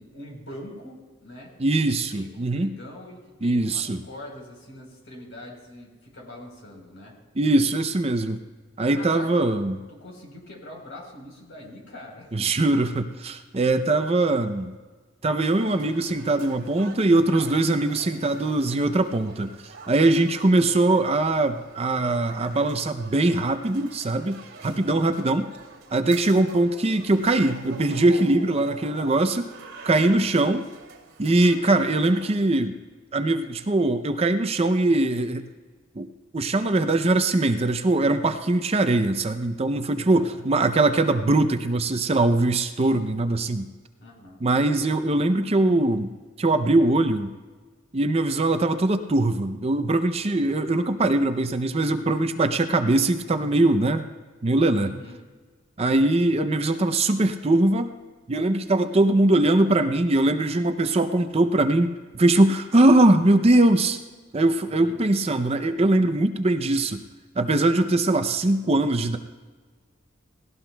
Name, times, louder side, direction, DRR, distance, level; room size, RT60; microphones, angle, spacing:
voice 1, 0.0-1.5 2.0-7.1 8.8-9.6 9.9-12.7 24.6-25.0 29.9-30.3 40.1-40.4 44.0-44.4 54.8-55.2 64.6-65.0, left 1 dB, 70° left, 0 dB, 4.0 m, -43 dB
voice 2, 1.6-2.7 3.4-4.0 7.4-8.4 8.8-9.8 12.3-14.7 15.2-19.5 19.9-25.5 25.9-29.5 29.8-30.7 31.2-32.7 33.1-35.4 36.0-36.1 36.3-43.7 44.4-46.1 46.4-47.3 47.9-54.0 54.4-54.9 55.8-58.0 58.3-64.0 64.3-67.0 67.4-69.2, right 2 dB, 30° right, 8 dB, 0.5 m, -21 dB
sound 1, 15.4-32.4, right 4 dB, 75° right, 2.4 m, -46 dB
18.0 x 17.5 x 2.3 m, 1.4 s
head